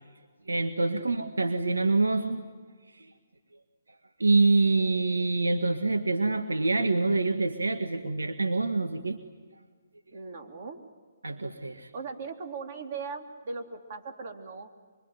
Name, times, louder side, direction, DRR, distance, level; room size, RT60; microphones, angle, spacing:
voice 1, 0.5-2.4 3.0-3.1 4.2-9.2 11.2-11.9, right 3 dB, 85° right, 6 dB, 1.7 m, -26 dB
voice 2, 10.1-10.8 11.9-14.7, right 4 dB, 50° right, 4 dB, 3.5 m, -39 dB
25.0 x 25.0 x 9.3 m, 1.5 s
figure-of-eight pair, 135°, 0 cm